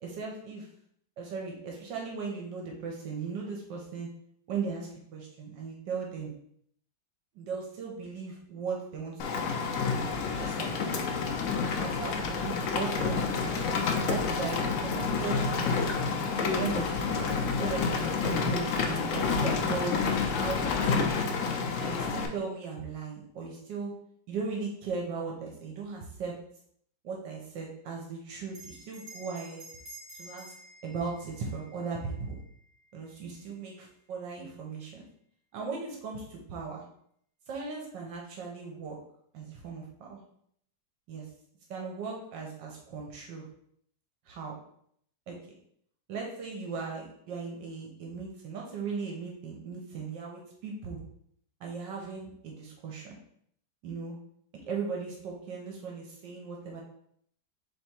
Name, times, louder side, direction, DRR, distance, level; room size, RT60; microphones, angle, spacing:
voice 1, 0.0-0.7 1.2-4.1 4.5-6.3 7.3-9.7 10.4-11.0 11.8-13.6 14.1-15.9 16.4-21.2 21.8-23.9 24.3-26.4 27.0-29.7 30.2-30.5 30.8-32.4 32.9-35.0 35.5-36.8 37.5-39.0 39.3-40.2 41.1-41.3 41.7-43.4 44.3-44.6 45.3-45.4 46.1-51.0 51.6-53.2 53.8-54.2 54.6-56.8, right 5 dB, 80° right, 0 dB, 1.5 m, -37 dB
Rain, 9.2-22.3, left 5 dB, 75° left, 0.7 m, -29 dB
Bell, 28.5-33.4, right 2 dB, 45° right, 1.4 m, -51 dB
3.5 x 3.4 x 4.2 m, 0.68 s
omnidirectional pair, 2.0 m